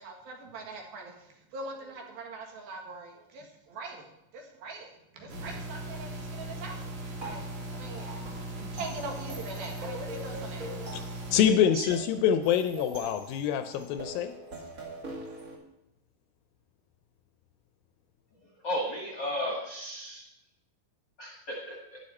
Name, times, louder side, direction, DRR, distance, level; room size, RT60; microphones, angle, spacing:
voice 1, 0.0-7.5 7.7-8.2 8.5-11.3 11.7-12.0 12.8-13.1 13.7-13.8, right 3 dB, 75° right, 2 dB, 3.5 m, -42 dB
sound 1, 5.3-11.4, right 1 dB, 60° right, 3.7 m, -39 dB
sound 2, 7.2-15.6, right 1 dB, 40° right, 1.3 m, -44 dB
voice 2, 11.3-14.3, left 9 dB, 80° left, 9 dB, 2.2 m, -25 dB
voice 3, 18.6-20.3 21.2-22.0, left 1 dB, 50° left, -2 dB, 1.4 m, -34 dB
11.5 x 10.0 x 4.3 m, 0.84 s
omnidirectional pair, 4.4 m